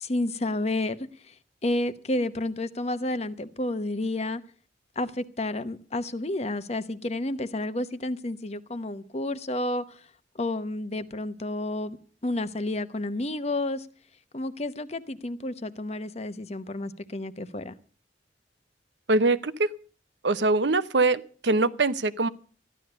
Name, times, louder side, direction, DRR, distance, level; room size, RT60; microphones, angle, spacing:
voice 1, 0.0-1.3 1.6-4.4 5.0-10.0 10.3-12.0 12.2-13.9 14.3-17.7, left 2 dB, 35° left, 0.9 m, -30 dB
voice 2, 19.1-19.7 20.2-22.3, right 3 dB, 80° right, 0.8 m, -23 dB
14.0 x 11.5 x 6.7 m
head